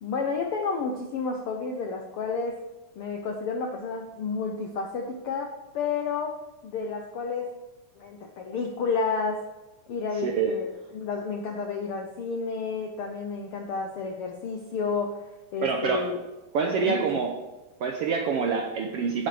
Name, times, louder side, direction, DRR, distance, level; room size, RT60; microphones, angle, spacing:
voice 1, 0.0-2.6 3.0-6.4 6.6-7.6 8.0-9.4 9.9-15.2 15.5-16.2 16.6-17.1, left 4 dB, 75° left, 2 dB, 1.3 m, -31 dB
voice 2, 10.2-10.6 15.6-16.1 16.5-17.4 17.8-19.3, right 5 dB, 75° right, 4 dB, 1.4 m, -26 dB
16.0 x 8.2 x 3.4 m, 1.1 s
omnidirectional pair, 3.6 m